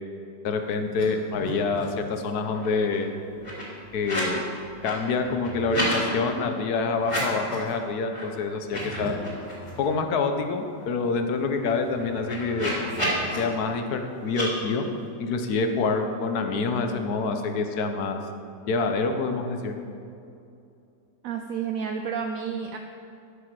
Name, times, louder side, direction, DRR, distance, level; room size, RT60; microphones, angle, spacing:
voice 1, 0.4-3.1 3.9-4.4 4.8-9.1 9.8-12.7 13.4-14.9 15.2-18.2 18.7-19.8, left 4 dB, 65° left, 6 dB, 1.2 m, -26 dB
sound 1, 0.9-2.0 2.3-4.4 4.7-6.0 7.0-7.7 8.1-8.2 8.6-9.9 10.3-10.4 10.7-13.4 14.3-14.5, equal, 15° left, 2.6 m, -32 dB
voice 2, 21.2-22.8, right 7 dB, 75° right, 5 dB, 0.8 m, -30 dB
12.0 x 6.7 x 4.7 m, 2.6 s
omnidirectional pair, 2.0 m